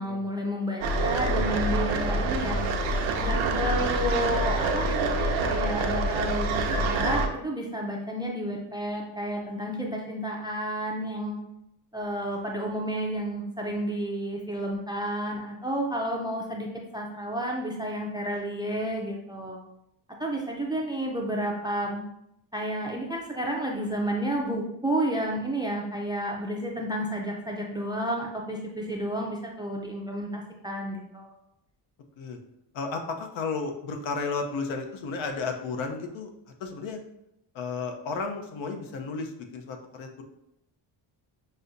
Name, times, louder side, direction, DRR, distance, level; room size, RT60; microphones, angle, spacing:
voice 1, 0.0-2.6 3.2-11.4 11.9-16.7 16.9-19.6 20.2-22.0 22.5-31.3, right 1 dB, 10° right, 0 dB, 0.4 m, -31 dB
sound 1, 0.8-7.3, right 2 dB, 80° right, 0.7 m, -26 dB
voice 2, 32.7-36.3 36.6-37.0 37.5-40.2, left 4 dB, 75° left, 5 dB, 0.8 m, -33 dB
6.2 x 2.7 x 2.6 m, 0.81 s
cardioid pair, 135°, 46 cm